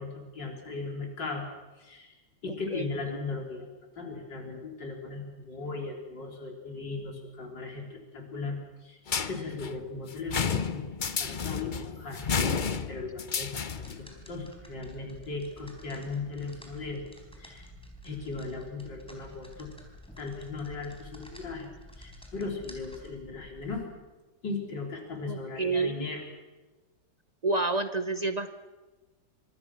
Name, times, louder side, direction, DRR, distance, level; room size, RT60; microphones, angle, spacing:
voice 1, 0.0-1.5 1.8-2.1 2.4-3.7 4.0-10.8 11.2-12.2 12.5-13.7 14.0-17.0 17.4-17.7 18.0-19.7 20.2-21.7 22.0-23.8 24.4-26.2, left 3 dB, 80° left, 1 dB, 4.5 m, -37 dB
voice 2, 2.5-2.9 25.2-26.1 27.4-28.5, right 3 dB, 35° right, 9 dB, 0.6 m, -29 dB
sound 1, 9.1-14.1, left 6 dB, 40° left, 0.7 m, -31 dB
sound 2, 13.6-23.9, equal, 5° left, 4.1 m, -50 dB
25.0 x 24.0 x 6.1 m, 1.2 s
omnidirectional pair, 1.9 m